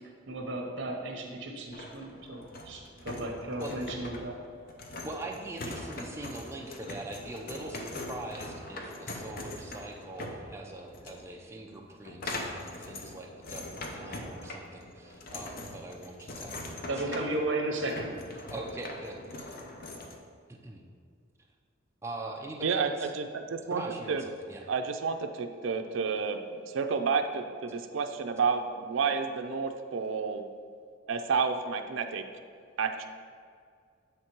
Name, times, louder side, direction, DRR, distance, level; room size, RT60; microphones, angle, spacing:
voice 1, 0.3-2.4 2.7-4.4 16.9-18.1, right 2 dB, 60° right, 1 dB, 0.9 m, -34 dB
sound 1, 1.7-20.2, left 2 dB, 50° left, 0.6 m, -42 dB
voice 2, 5.0-17.4 18.5-19.5 20.5-20.9 22.0-23.1 23.7-24.7, right 2 dB, 15° right, 0 dB, 0.5 m, -42 dB
voice 3, 22.6-23.8 24.1-24.3 24.7-30.5 31.1-32.2 32.8-33.1, right 5 dB, 85° right, 6 dB, 0.4 m, -30 dB
7.8 x 3.6 x 4.4 m, 2.1 s
head